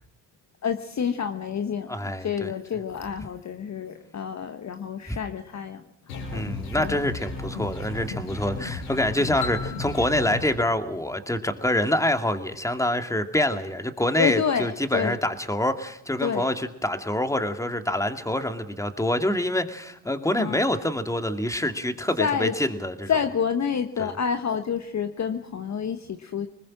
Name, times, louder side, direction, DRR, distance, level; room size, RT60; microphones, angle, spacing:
voice 1, 0.6-5.8 6.1-6.4 6.8-7.0 14.2-15.2 16.2-16.5 20.4-20.6 22.2-22.5 23.1-26.5, left 7 dB, 35° left, 7 dB, 1.3 m, -28 dB
voice 2, 1.9-2.5 5.1-5.2 6.3-23.1 24.0-24.1, left 1 dB, 5° left, 7 dB, 2.3 m, -26 dB
sound 1, 6.1-10.5, left 3 dB, 85° left, 7.0 m, -34 dB
sound 2, 9.4-12.1, left 6 dB, 55° left, 5.1 m, -39 dB
25.5 x 20.0 x 6.3 m, 0.74 s
hypercardioid pair, 60°, 46 cm